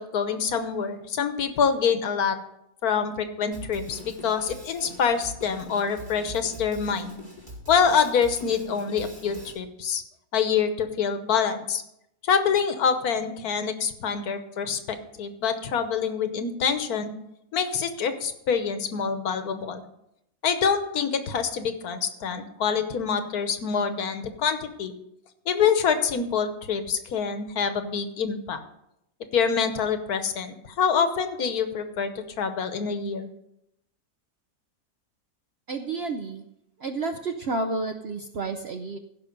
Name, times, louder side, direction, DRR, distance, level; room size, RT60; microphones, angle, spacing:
voice 1, 0.1-2.4 2.8-7.2 7.7-10.0 10.3-11.8 12.2-17.1 17.5-19.8 20.4-24.9 25.5-28.6 29.3-33.3, left 6 dB, 70° left, 9 dB, 1.4 m, -26 dB
Drum kit, 3.5-9.5, equal, 30° right, 4.6 m, -43 dB
voice 2, 35.7-36.4 36.8-39.0, right 3 dB, 55° right, 6 dB, 0.7 m, -30 dB
15.5 x 5.7 x 5.3 m, 0.81 s
omnidirectional pair, 1.8 m